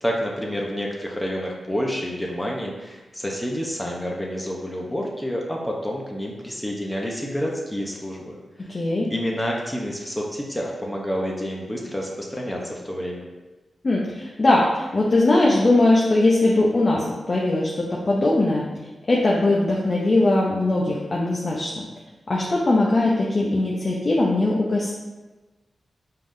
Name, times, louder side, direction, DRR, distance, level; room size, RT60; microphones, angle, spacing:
voice 1, 0.0-8.7 9.1-13.2, equal, 15° left, -2 dB, 0.8 m, -29 dB
voice 2, 8.7-9.1 13.8-18.6 19.1-21.7 22.3-24.9, left 2 dB, 45° left, -3 dB, 0.7 m, -20 dB
5.6 x 3.6 x 2.7 m, 1.2 s
cardioid pair, 60°, 0 cm